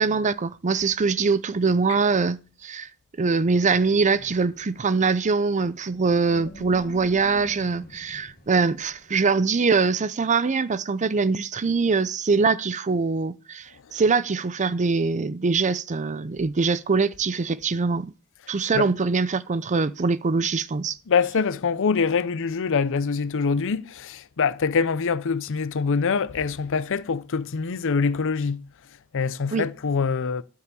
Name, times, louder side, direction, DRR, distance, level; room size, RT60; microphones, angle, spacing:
voice 1, 0.0-2.9 3.2-18.1 18.5-21.0 29.5-29.7, right 4 dB, 35° right, 0.5 m, -23 dB
Wind, 3.5-9.4, left 1 dB, 40° left, 1.2 m, -47 dB
voice 2, 21.1-28.7 29.1-30.4, left 5 dB, 60° left, 0.6 m, -24 dB
12.0 x 4.8 x 6.9 m
head